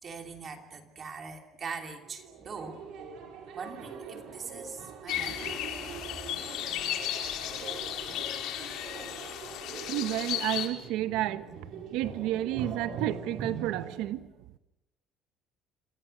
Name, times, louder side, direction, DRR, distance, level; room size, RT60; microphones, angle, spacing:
voice 1, 0.0-2.8 3.5-5.6, right 5 dB, 30° right, 2.9 m, -42 dB
sound 1, 2.0-14.1, right 5 dB, 60° right, 5.7 m, -43 dB
sound 2, 5.1-10.7, left 11 dB, 65° left, 3.4 m, -35 dB
voice 2, 9.8-11.4 11.9-14.3, right 14 dB, 85° right, 1.1 m, -31 dB
28.5 x 26.0 x 6.7 m
cardioid pair, 170°, 0 cm